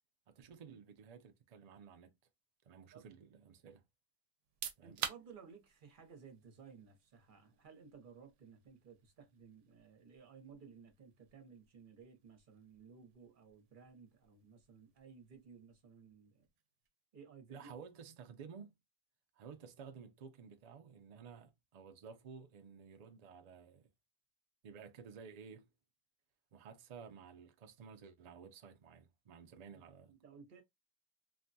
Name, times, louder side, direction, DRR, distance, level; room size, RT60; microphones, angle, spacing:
voice 1, 0.3-2.1 2.6-3.8 4.8-5.0 17.5-18.7 19.4-23.9 24.6-25.7 26.5-30.1, right 6 dB, 90° right, 0.3 m, -54 dB
sound 1, 4.4-17.0, right 8 dB, 75° right, 0.9 m, -52 dB
voice 2, 4.8-16.5 17.1-17.7 29.7-29.8 30.1-30.6, right 6 dB, 45° right, 0.9 m, -57 dB
3.2 x 2.2 x 2.6 m
omnidirectional pair, 1.3 m